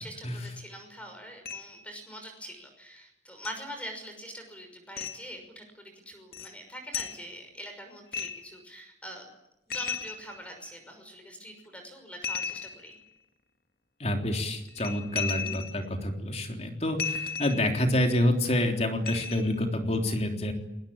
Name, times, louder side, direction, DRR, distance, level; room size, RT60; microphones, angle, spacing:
voice 1, 0.0-9.3 9.7-13.0, equal, 10° left, 5 dB, 5.9 m, -44 dB
sound 1, 1.5-1.8 3.4-3.6 5.0-5.2 6.3-6.5 6.9-7.2 8.1-8.6 9.7-10.8 12.2-13.1 14.7-15.9 17.0-17.8 19.1-19.6, left 5 dB, 60° left, 2.2 m, -35 dB
voice 2, 14.0-20.5, left 1 dB, 40° left, 3 dB, 3.6 m, -27 dB
29.5 x 21.0 x 8.8 m, 0.90 s
head